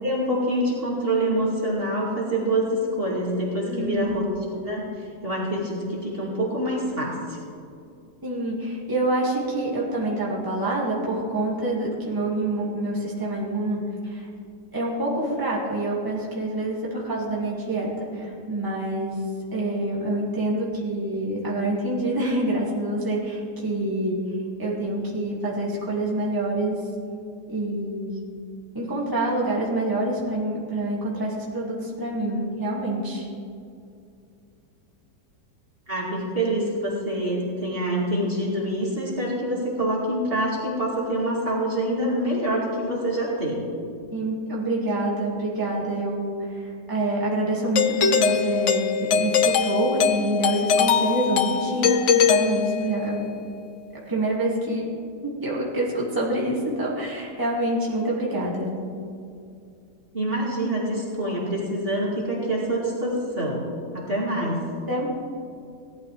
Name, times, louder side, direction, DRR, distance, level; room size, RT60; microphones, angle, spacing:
voice 1, 0.0-4.2 4.5-7.4 35.9-43.7 60.1-63.6 63.9-64.7, right 1 dB, 35° right, -5 dB, 2.5 m, -26 dB
voice 2, 3.7-4.1 8.2-14.3 14.7-19.2 19.5-24.2 24.6-26.8 27.5-28.2 28.7-33.3 44.1-53.3 54.1-54.9 55.4-58.7 64.9-65.1, right 1 dB, 10° right, -6 dB, 2.3 m, -26 dB
Doorbell, 47.8-53.2, left 7 dB, 60° left, 0.8 m, -22 dB
18.0 x 12.5 x 3.4 m, 2.5 s
omnidirectional pair, 1.8 m